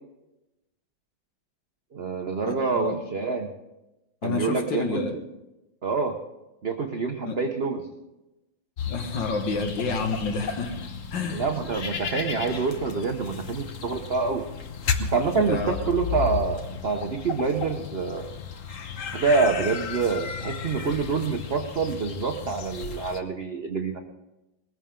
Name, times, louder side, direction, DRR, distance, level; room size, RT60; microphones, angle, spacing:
voice 1, 1.9-3.5 4.2-5.3 5.8-6.1 6.6-7.9 11.3-14.4 15.0-18.3 19.1-24.0, right 4 dB, 40° right, 4 dB, 0.9 m, -26 dB
voice 2, 2.5-3.0 4.2-5.1 7.2-7.4 8.9-11.5 15.4-15.9, left 4 dB, 65° left, 5 dB, 2.3 m, -29 dB
sound 1, 8.8-23.2, left 6 dB, 50° left, 1.2 m, -34 dB
20.5 x 14.5 x 3.8 m, 0.98 s
omnidirectional pair, 2.2 m